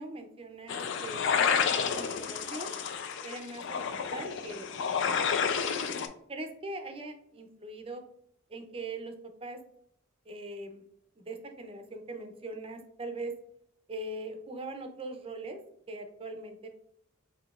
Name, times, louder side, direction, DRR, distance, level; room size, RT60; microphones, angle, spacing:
voice 1, 0.0-2.7 3.2-4.6 4.9-5.0 6.3-8.0 8.5-9.1 9.4-9.6 10.3-10.8 11.2-13.3 13.9-15.6 15.9-16.7, right 2 dB, 25° right, 5 dB, 0.5 m, -41 dB
sound 1, 0.7-6.1, left 6 dB, 60° left, 0.4 m, -30 dB
5.8 x 2.8 x 2.4 m, 0.70 s
head